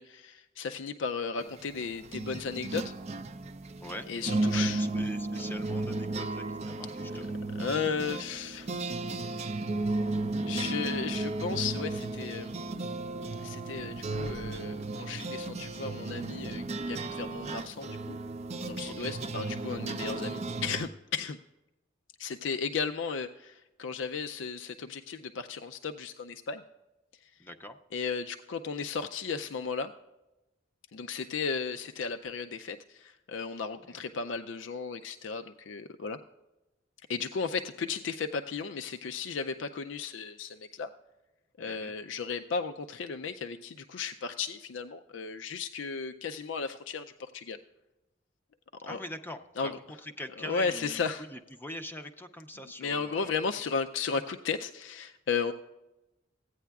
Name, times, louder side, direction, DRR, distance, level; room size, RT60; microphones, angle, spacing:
voice 1, 0.0-2.9 4.1-4.9 7.6-8.7 10.4-12.5 13.4-18.2 18.6-21.4 22.2-26.6 27.2-27.3 27.9-29.9 30.9-36.2 37.1-40.9 41.6-47.6 48.8-49.0 49.6-49.7 50.4-51.2 52.8-55.5, left 5 dB, 75° left, 7 dB, 0.4 m, -35 dB
sound 1, 1.4-20.9, right 2 dB, 35° right, 0.5 m, -34 dB
voice 2, 3.8-4.1 4.4-7.4 18.8-19.1 27.4-27.8 33.8-34.0 41.6-41.9 48.8-53.4 53.7-53.8, left 1 dB, 10° left, 6 dB, 0.5 m, -43 dB
15.5 x 9.1 x 2.3 m, 1.0 s
head